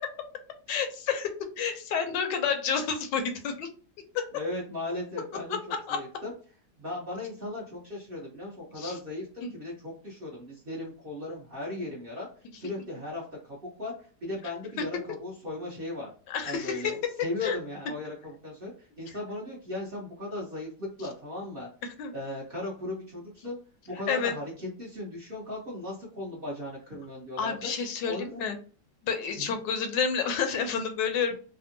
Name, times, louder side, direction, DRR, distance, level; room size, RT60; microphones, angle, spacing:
voice 1, 0.7-3.7 4.1-4.3 5.9-6.0 8.8-8.9 9.4-9.5 14.8-14.9 16.3-16.8 17.4-17.5 19.1-19.2 22.0-22.1 24.1-24.3 27.4-28.6 29.0-31.4, left 6 dB, 80° left, 6 dB, 1.3 m, -29 dB
voice 2, 4.3-5.6 5.9-6.3 6.8-12.3 12.6-13.9 14.2-16.1 16.4-18.7 19.0-21.7 22.1-23.6 23.9-27.5 28.0-28.4 29.4-29.5, left 2 dB, 40° right, -4 dB, 0.9 m, -37 dB
3.4 x 2.0 x 2.6 m, 0.39 s
omnidirectional pair, 1.9 m